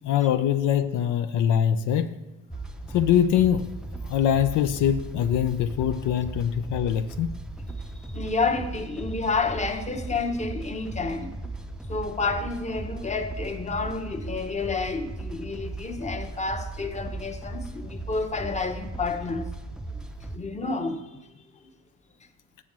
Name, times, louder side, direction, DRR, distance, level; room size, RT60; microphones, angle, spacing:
voice 1, 0.0-2.2 2.9-3.7 4.0-7.3, left 9 dB, 80° left, 0.6 m, -23 dB
sound 1, 2.5-20.4, right 2 dB, 5° right, 0.5 m, -37 dB
voice 2, 8.1-11.3 11.9-19.5 19.9-20.0 20.3-21.2 21.6-21.7, left 4 dB, 25° left, 0.9 m, -30 dB
7.0 x 6.3 x 5.9 m
cardioid pair, 90°, 30 cm